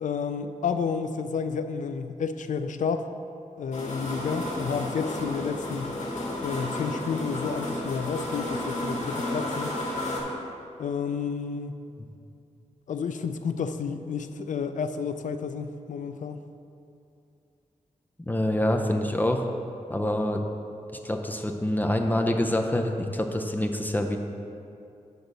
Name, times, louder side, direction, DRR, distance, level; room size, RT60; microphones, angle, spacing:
voice 1, 0.0-3.1 3.6-5.9 6.4-9.7 10.8-11.7 12.9-16.4, left 6 dB, 90° left, 9 dB, 0.4 m, -31 dB
sound 1, 3.7-10.2, left 1 dB, 70° left, 1.6 m, -32 dB
voice 2, 18.3-19.5 19.9-20.4 21.0-24.2, left 1 dB, 15° left, 3 dB, 0.5 m, -26 dB
8.0 x 3.9 x 6.7 m, 2.6 s
wide cardioid pair, 125°, 13 cm